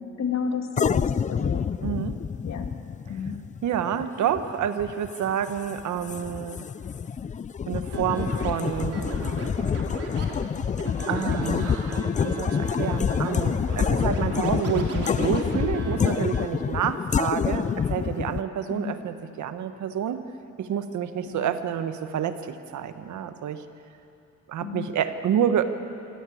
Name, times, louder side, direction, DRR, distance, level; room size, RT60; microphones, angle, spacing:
voice 1, 0.2-1.7 2.4-2.7 3.1-3.3 18.7-19.0 21.3-21.5 24.6-24.9, left 6 dB, 60° left, 4 dB, 2.5 m, -31 dB
sound 1, 0.8-18.4, left 7 dB, 25° left, 0.4 m, -27 dB
voice 2, 1.8-2.2 3.6-6.7 7.7-9.0 11.1-20.3 20.6-23.6 24.5-25.6, right 9 dB, 70° right, 9 dB, 1.4 m, -28 dB
Scratching (performance technique), 7.9-16.4, right 4 dB, 50° right, 3.6 m, -37 dB
23.5 x 17.0 x 8.6 m, 2.7 s
cardioid pair, 90°, 30 cm